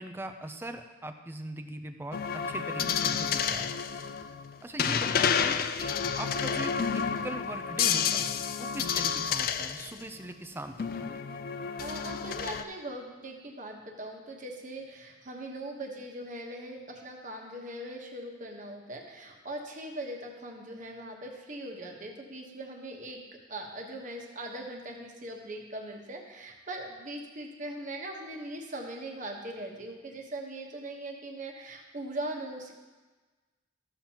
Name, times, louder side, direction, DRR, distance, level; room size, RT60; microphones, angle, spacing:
voice 1, 0.0-3.7 4.6-10.8 11.0-11.1, right 1 dB, 10° right, 7 dB, 0.5 m, -41 dB
sound 1, 2.1-10.0 10.8-12.6, left 7 dB, 50° left, 0.3 m, -30 dB
voice 2, 11.8-23.2 23.5-32.7, right 1 dB, 40° right, 1 dB, 1.2 m, -40 dB
13.5 x 7.2 x 2.9 m, 1.2 s
head